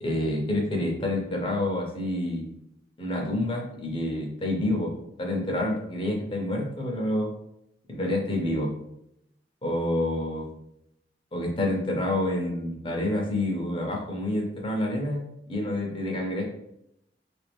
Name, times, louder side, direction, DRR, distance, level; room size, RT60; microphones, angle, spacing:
voice 1, 0.0-2.5 3.0-4.9 5.2-7.3 7.9-8.7 9.6-10.5 11.3-16.5, left 1 dB, 30° left, -1 dB, 0.8 m, -28 dB
3.5 x 2.5 x 3.5 m, 0.79 s
head